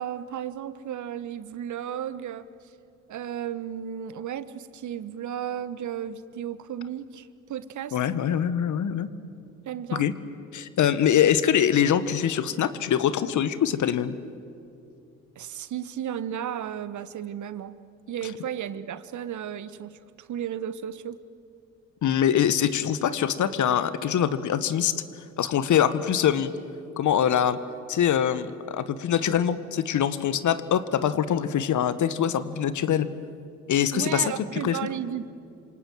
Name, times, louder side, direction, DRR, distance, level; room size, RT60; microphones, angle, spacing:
voice 1, 0.0-2.5 3.1-8.0 9.6-10.1 15.3-17.8 18.1-21.2 33.9-35.2, right 9 dB, 45° right, 15 dB, 1.2 m, -34 dB
voice 2, 7.9-9.1 9.9-10.1 10.5-14.1 22.0-24.9 25.4-26.5 27.0-27.6 27.9-33.1 33.7-34.8, left 9 dB, 45° left, 14 dB, 1.5 m, -24 dB
27.5 x 26.5 x 7.7 m, 2.6 s
hypercardioid pair, 55°, 42 cm